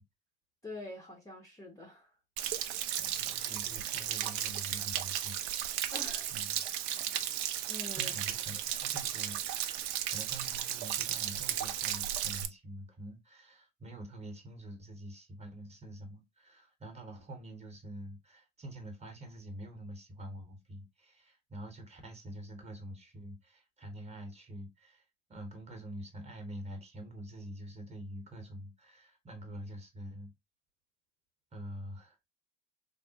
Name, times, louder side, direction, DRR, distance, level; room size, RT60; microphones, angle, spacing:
voice 1, 0.6-2.1 2.5-2.8 5.9-6.3 6.6-7.3 7.7-8.1, left 1 dB, 10° left, 0.7 m, -47 dB
Stream / Splash splatter / Trickle dribble, 2.4-12.5, right 11 dB, 45° right, 0.5 m, -35 dB
voice 2, 3.0-5.4 6.3-7.0 8.0-9.4 10.1-25.0 25.3-30.3 31.5-32.3, right 1 dB, 15° right, 0.9 m, -46 dB
3.4 x 2.0 x 2.7 m
hypercardioid pair, 90°, 37 cm